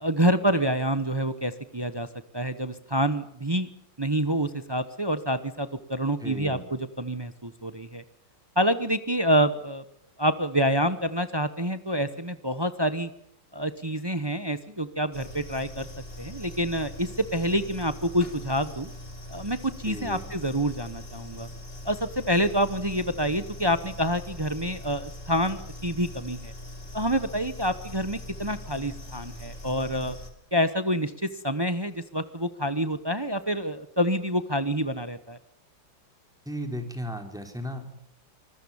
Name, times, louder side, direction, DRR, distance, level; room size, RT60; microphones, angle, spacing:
voice 1, 0.0-2.1 2.3-3.7 4.0-8.0 8.6-9.8 10.2-13.1 13.5-15.9 16.2-18.9 19.3-21.5 21.8-26.5 26.9-30.2 30.5-35.4, equal, 25° right, 11 dB, 0.6 m, -27 dB
voice 2, 6.2-6.6 19.8-20.3 36.5-37.9, equal, ahead, 4 dB, 3.6 m, -35 dB
sound 1, 15.1-30.3, left 1 dB, 30° left, 3.2 m, -42 dB
25.5 x 20.5 x 7.1 m, 0.68 s
omnidirectional pair, 2.0 m